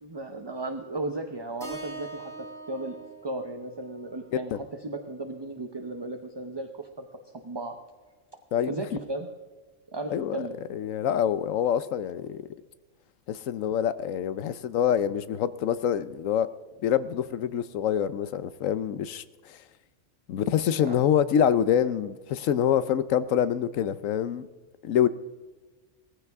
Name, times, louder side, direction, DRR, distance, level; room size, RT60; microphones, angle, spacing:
voice 1, 0.0-7.1 7.3-7.8 8.7-9.3 9.9-10.6 20.8-21.0, right 2 dB, 25° right, 5 dB, 0.7 m, -35 dB
Keyboard (musical), 1.6-5.8, right 3 dB, ahead, 3.7 m, -44 dB
voice 2, 10.7-12.4 13.3-16.5 16.8-19.2 19.5-19.6 20.3-24.5 24.8-25.1, left 9 dB, 80° left, 15 dB, 1.1 m, -26 dB
18.0 x 15.0 x 3.5 m, 1.3 s
omnidirectional pair, 1.3 m